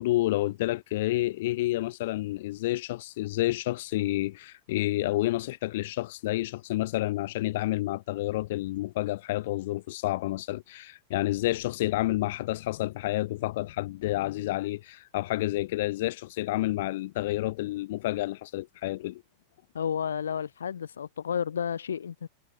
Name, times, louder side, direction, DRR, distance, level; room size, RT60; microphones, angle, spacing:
voice 1, 0.0-19.2, left 17 dB, 65° left, 2.1 m, -29 dB
voice 2, 19.7-22.3, left 8 dB, 85° left, 0.9 m, -31 dB
hypercardioid pair, 105°, 0 cm